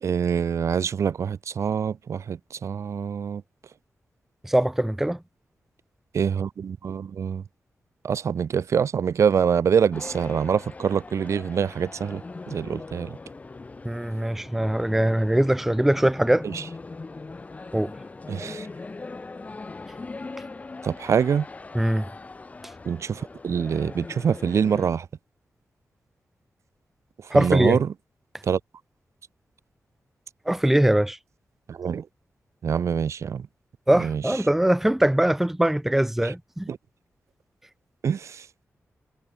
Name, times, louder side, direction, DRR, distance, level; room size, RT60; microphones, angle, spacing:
voice 1, 0.0-3.4 6.1-7.4 8.0-12.2 12.5-13.2 16.4-16.6 18.3-18.7 20.8-21.5 22.8-25.1 27.3-27.9 28.4-28.6 31.7-32.0 32.6-33.5 34.0-34.2 36.2-36.3 36.7-36.8 38.0-38.5, right 7 dB, 70° right, 1.1 m, -25 dB
voice 2, 4.4-5.2 13.8-16.5 17.7-17.9 21.7-22.1 27.3-27.8 30.5-31.2 33.9-36.7, right 1 dB, 5° right, 0.6 m, -22 dB
sound 1, 9.9-24.9, left 3 dB, 30° left, 1.5 m, -40 dB
wide cardioid pair, 140°, 5 cm